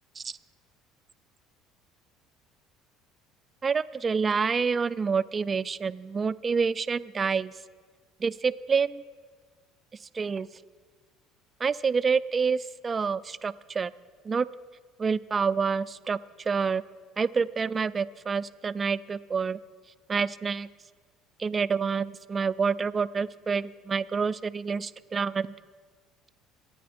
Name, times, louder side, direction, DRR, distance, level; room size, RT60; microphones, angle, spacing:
voice 1, 3.6-7.5 8.2-9.0 10.1-10.5 11.6-13.9 14.2-14.5 15.0-16.8 17.2-19.6 20.1-20.7 21.4-25.5, right 5 dB, 25° right, 15 dB, 0.4 m, -27 dB
24.0 x 9.5 x 4.3 m, 1.5 s
cardioid pair, 110°, 0 cm